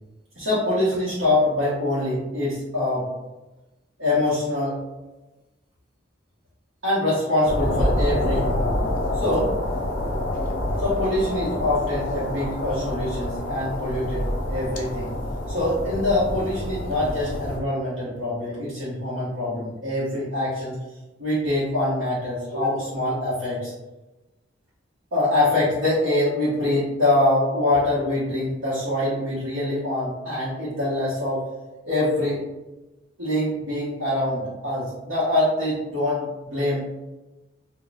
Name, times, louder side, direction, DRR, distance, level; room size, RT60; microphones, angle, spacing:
voice 1, 0.4-3.1 4.0-4.8 6.8-8.7 9.1-9.5 10.8-15.1 15.5-20.8 21.2-23.7 25.1-31.4 31.8-32.4 33.2-36.9, left 1 dB, 80° right, -10 dB, 1.0 m, -24 dB
sound 1, 7.5-17.6, left 1 dB, 45° left, 0.6 m, -27 dB
3.9 x 2.3 x 2.3 m, 1.1 s
head